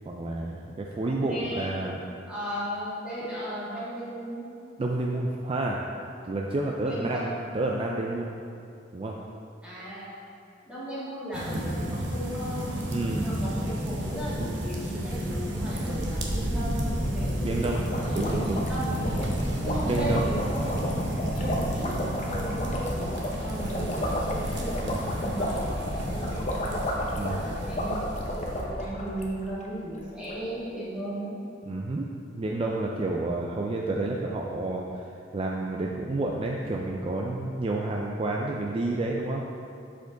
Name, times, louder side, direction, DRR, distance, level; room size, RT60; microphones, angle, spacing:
voice 1, 0.1-2.0 4.8-5.8 6.2-7.3 7.5-8.3 8.9-9.2 12.9-13.3 17.4-17.8 18.1-18.6 19.8-20.4 24.8-25.0 27.1-27.4 31.7-32.1 32.3-35.1 35.3-39.4, right 2 dB, 30° right, -1 dB, 0.3 m, -30 dB
voice 2, 1.0-1.7 2.3-4.5 6.8-7.4 9.6-10.1 10.6-12.7 13.2-18.4 18.7-18.9 19.6-20.9 21.3-26.8 27.2-31.3, right 1 dB, 5° right, -11 dB, 1.6 m, -36 dB
sound 1, 11.3-28.6, equal, 70° right, 0.9 m, -32 dB
sound 2, 16.9-29.6 29.9-30.0 30.2-30.5, equal, 40° left, 0.8 m, -32 dB
6.8 x 5.1 x 3.8 m, 2.5 s
head